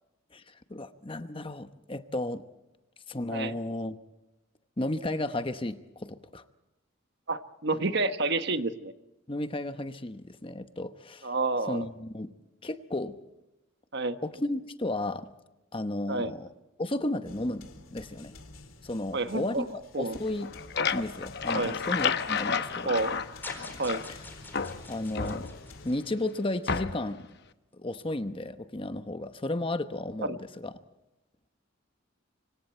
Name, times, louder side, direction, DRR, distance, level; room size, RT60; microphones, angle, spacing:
voice 1, 0.3-2.4 3.1-4.0 4.8-6.4 9.3-11.3 11.7-12.3 12.6-13.2 14.2-15.3 15.7-16.5 16.8-18.3 18.8-20.5 20.9-22.9 24.1-24.2 24.9-25.5 25.8-27.2 27.7-30.7, left 1 dB, 25° left, 10 dB, 1.0 m, -33 dB
voice 2, 7.3-8.9 11.2-11.8 13.9-14.2 16.1-16.3 19.1-19.7 19.9-20.2 21.5-21.8 22.8-23.2 23.8-24.0 30.2-30.4, right 3 dB, 55° right, 9 dB, 1.2 m, -29 dB
sound 1, 17.3-26.0, left 2 dB, 80° left, 3.1 m, -50 dB
sound 2, 20.3-24.2 24.5-25.9 26.7-27.2, left 6 dB, 55° left, 0.9 m, -31 dB
sound 3, 23.4-26.7, left 2 dB, 10° left, 4.3 m, -46 dB
25.5 x 25.5 x 4.5 m, 0.96 s
head